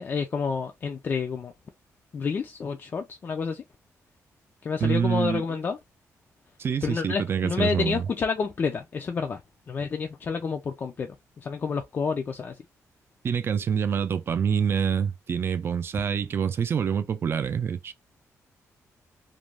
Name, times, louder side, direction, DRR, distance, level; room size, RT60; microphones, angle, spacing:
voice 1, 0.0-1.5 2.1-3.6 4.6-5.8 6.8-9.4 9.7-11.1 11.4-12.6, left 5 dB, 35° left, 0.3 m, -29 dB
voice 2, 4.8-5.6 6.6-8.1 13.2-17.9, right 7 dB, 45° right, 0.4 m, -26 dB
2.5 x 2.2 x 3.2 m
wide cardioid pair, 140°, 6 cm